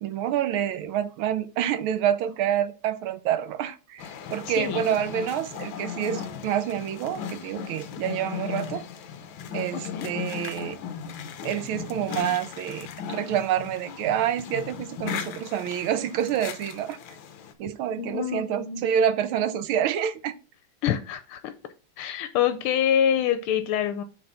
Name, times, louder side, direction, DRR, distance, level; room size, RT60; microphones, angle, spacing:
voice 1, 0.0-8.8 9.5-10.8 11.4-17.0 17.6-20.3, right 9 dB, 75° right, 1.5 m, -27 dB
sound 1, 4.0-17.5, left 7 dB, 65° left, 1.5 m, -37 dB
voice 2, 4.5-5.0 7.9-8.0 9.7-10.1 18.0-18.8 20.8-21.5 22.0-24.0, left 9 dB, 85° left, 1.6 m, -26 dB
8.6 x 3.6 x 5.5 m
omnidirectional pair, 2.4 m